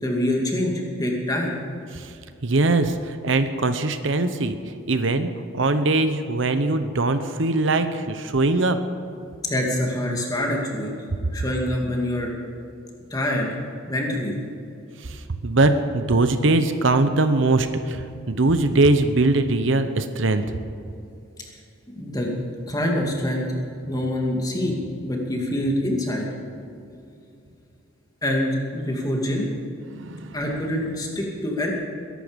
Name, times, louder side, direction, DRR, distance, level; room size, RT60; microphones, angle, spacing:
voice 1, 0.0-1.6 9.4-10.9 11.3-12.3 13.1-13.6 13.9-14.3 22.0-22.3 22.7-23.5 23.9-24.8 25.0-26.3 28.2-29.5 30.3-31.7, left 1 dB, 20° left, -1 dB, 2.5 m, -25 dB
voice 2, 2.4-4.6 4.9-8.8 15.0-18.0 18.3-20.4 29.9-30.4, right 2 dB, 65° right, 9 dB, 0.9 m, -21 dB
21.5 x 11.5 x 5.2 m, 2.6 s
head